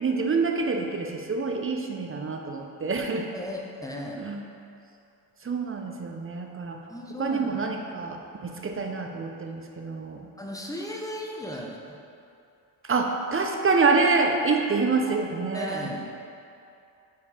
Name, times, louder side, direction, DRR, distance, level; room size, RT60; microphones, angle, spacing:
voice 1, 0.0-3.3 4.2-4.4 5.4-6.8 7.2-10.3 12.8-15.9, right 4 dB, 30° right, 3 dB, 0.6 m, -26 dB
voice 2, 3.3-4.2 6.9-7.6 10.4-12.0 15.5-16.1, equal, 10° left, -1 dB, 0.9 m, -36 dB
5.3 x 4.6 x 4.9 m, 2.6 s
cardioid pair, 75°, 44 cm